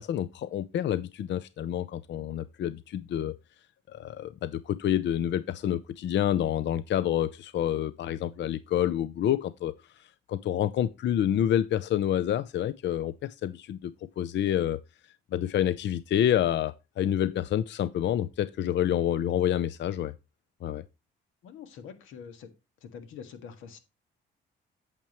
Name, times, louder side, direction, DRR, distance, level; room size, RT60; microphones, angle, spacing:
voice 1, 0.0-3.4 3.9-9.7 10.3-14.8 15.3-20.1 20.6-20.8, left 11 dB, 65° left, 0.6 m, -28 dB
voice 2, 21.4-22.5 22.8-23.8, left 7 dB, 85° left, 1.8 m, -45 dB
8.6 x 7.4 x 3.1 m
cardioid pair, 90°, 20 cm